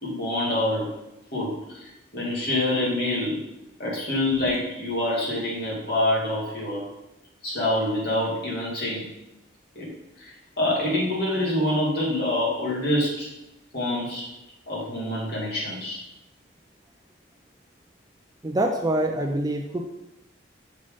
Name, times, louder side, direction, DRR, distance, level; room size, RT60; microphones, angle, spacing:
voice 1, 0.0-0.9 1.3-3.5 3.8-6.9 7.4-9.0 9.7-9.9 10.2-13.3 13.7-14.3 14.7-16.0, left 1 dB, 55° left, -5 dB, 2.4 m, -26 dB
voice 2, 18.4-19.8, right 1 dB, 20° right, 4 dB, 0.4 m, -25 dB
6.6 x 3.6 x 5.1 m, 0.91 s
head